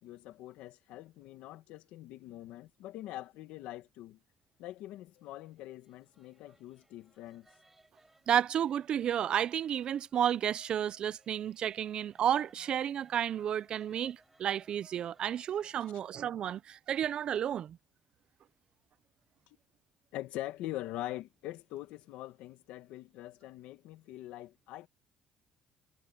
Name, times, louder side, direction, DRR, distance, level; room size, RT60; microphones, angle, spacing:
voice 1, 0.0-4.2 4.6-7.5 20.1-24.9, left 15 dB, 90° left, 1.5 m, -43 dB
sound 1, 4.7-15.9, right 2 dB, 10° right, 4.3 m, -66 dB
voice 2, 8.3-17.8, right 9 dB, 45° right, 0.4 m, -32 dB
cardioid pair, 155°, 2 cm